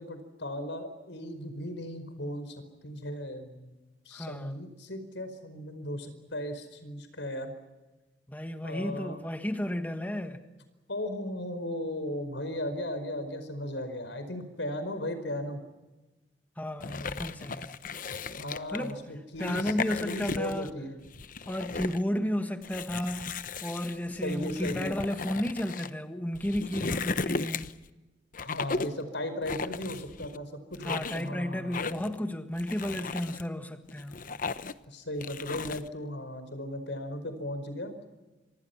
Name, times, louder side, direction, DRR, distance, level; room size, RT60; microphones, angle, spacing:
voice 1, 0.0-3.7 4.0-7.5 8.6-9.2 10.9-15.6 18.3-19.7 20.0-20.9 21.8-21.9 24.2-24.9 28.4-32.1 34.9-37.9, left 1 dB, 85° left, 10 dB, 4.9 m, -36 dB
voice 2, 4.1-4.6 8.3-10.4 16.6-17.8 18.7-19.0 19.4-20.7 21.5-27.7 30.8-34.2, left 1 dB, 10° left, 6 dB, 1.5 m, -33 dB
sound 1, 16.8-18.9 19.3-20.7 21.0-22.0 22.6-25.9 26.3-27.9 28.3-29.0 29.4-30.4 30.7-31.3 31.7-32.2 32.6-33.4 33.9-34.8 35.2-35.9, left 4 dB, 50° left, 0.9 m, -36 dB
29.5 x 25.5 x 5.9 m, 1.1 s
head